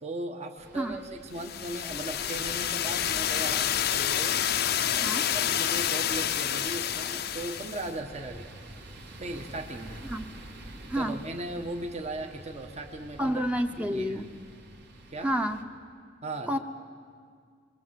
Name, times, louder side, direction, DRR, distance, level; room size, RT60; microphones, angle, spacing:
voice 1, 0.0-4.4 4.9-8.5 9.2-10.0 10.9-13.4 13.7-14.2 15.1-15.3 16.2-16.6, right 2 dB, 35° right, 3 dB, 1.3 m, -38 dB
sound 1, 0.6-15.6, right 1 dB, 60° right, 2.1 m, -48 dB
sound 2, 1.4-7.9, left 10 dB, 55° left, 0.7 m, -28 dB
voice 2, 13.2-14.3 15.2-15.6 16.5-16.6, equal, 5° right, 6 dB, 0.9 m, -29 dB
27.0 x 23.0 x 7.6 m, 2.1 s
head